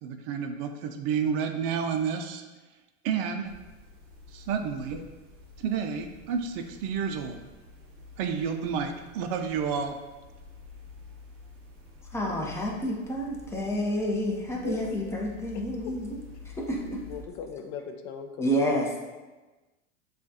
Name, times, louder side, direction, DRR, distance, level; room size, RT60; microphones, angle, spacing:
voice 1, 0.0-2.4 3.0-3.5 4.3-5.0 5.6-7.4 8.2-10.0, right 6 dB, 50° right, 6 dB, 0.5 m, -30 dB
sound 1, 3.5-17.2, left 4 dB, 35° right, 1.0 m, -49 dB
voice 2, 12.1-16.2 16.4-17.0 18.4-19.0, equal, 5° left, -1 dB, 0.7 m, -29 dB
voice 3, 17.1-18.5, left 6 dB, 60° left, 6 dB, 0.6 m, -38 dB
7.3 x 2.4 x 2.7 m, 1.2 s
hypercardioid pair, 105°, 39 cm